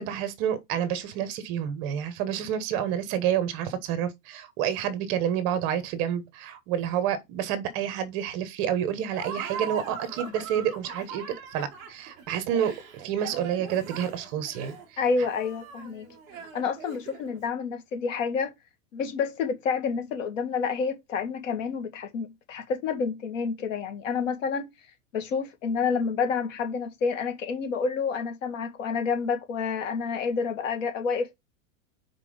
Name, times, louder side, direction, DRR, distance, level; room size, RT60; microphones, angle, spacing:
voice 1, 0.0-14.7, right 9 dB, 30° right, 1.0 m, -29 dB
Laughter, 9.1-17.4, right 6 dB, 10° right, 0.3 m, -40 dB
voice 2, 15.0-16.1 16.5-18.5 18.9-24.6 25.1-31.3, left 5 dB, 65° left, 2.0 m, -29 dB
5.8 x 4.4 x 5.0 m
supercardioid pair, 170°, 42 cm